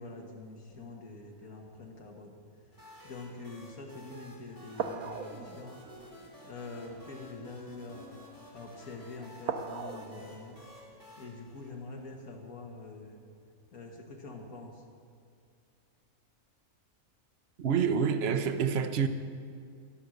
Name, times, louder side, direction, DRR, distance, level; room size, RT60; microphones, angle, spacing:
voice 1, 0.0-2.4 3.0-5.8 6.4-10.6 11.2-13.2 13.7-14.8, left 3 dB, 80° left, 0 dB, 2.2 m, -45 dB
sound 1, 0.7-2.0 2.5-2.8 3.6-3.8 4.7-8.3 8.8-9.1 9.4-12.9 13.6-13.7, right 6 dB, 80° right, 1.3 m, -42 dB
sound 2, 2.7-12.4, left 1 dB, 15° left, 2.6 m, -53 dB
voice 2, 17.6-19.1, right 7 dB, 55° right, 8 dB, 0.9 m, -27 dB
12.5 x 11.0 x 6.6 m, 2.3 s
omnidirectional pair, 1.5 m